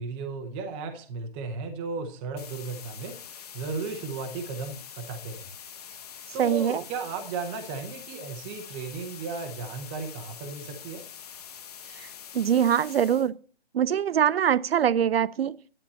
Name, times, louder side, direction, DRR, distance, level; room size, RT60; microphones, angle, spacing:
voice 1, 0.0-3.2 3.5-5.5 6.3-11.0, right 4 dB, 10° right, 0.7 m, -35 dB
sound 1, 2.4-13.3, left 8 dB, 40° left, 0.9 m, -44 dB
voice 2, 6.4-6.8 12.0-12.1 12.3-13.3 13.7-15.6, right 9 dB, 70° right, 0.5 m, -23 dB
11.5 x 8.6 x 4.1 m
hypercardioid pair, 160°, 31 cm